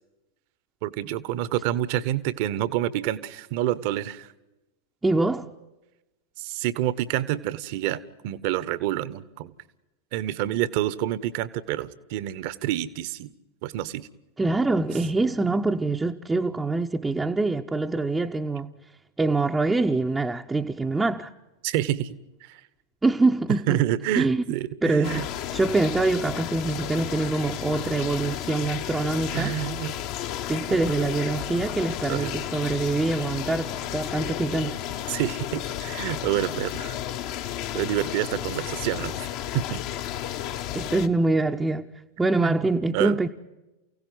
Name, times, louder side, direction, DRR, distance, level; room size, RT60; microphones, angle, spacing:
voice 1, 0.8-4.3 6.4-9.5 10.1-13.3 13.6-14.1 21.6-22.6 23.7-25.2 29.3-29.9 30.7-30.8 32.1-32.4 35.1-37.0 37.7-39.3 39.5-39.8 42.4-42.7 42.9-43.2, right 13 dB, 45° right, 1.2 m, -28 dB
voice 2, 5.0-5.5 14.4-18.7 19.2-21.3 23.0-23.8 24.2-24.4 24.8-25.2 25.5-29.6 30.5-34.8 40.7-41.9 42.2-43.3, right 3 dB, 10° right, 0.9 m, -24 dB
sound 1, 25.0-41.1, left 11 dB, 45° left, 1.3 m, -33 dB
29.5 x 17.0 x 9.5 m
figure-of-eight pair, 90°, 0 cm